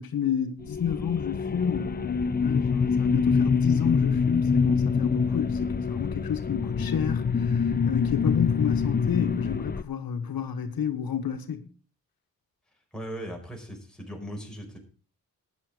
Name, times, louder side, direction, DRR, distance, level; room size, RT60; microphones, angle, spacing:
voice 1, 0.0-11.6, left 8 dB, 85° left, 1.4 m, -30 dB
sound 1, 0.6-9.8, left 5 dB, 25° left, 0.6 m, -25 dB
voice 2, 12.9-14.8, equal, ahead, 5.0 m, -38 dB
13.0 x 9.6 x 4.9 m
cardioid pair, 85°, 35 cm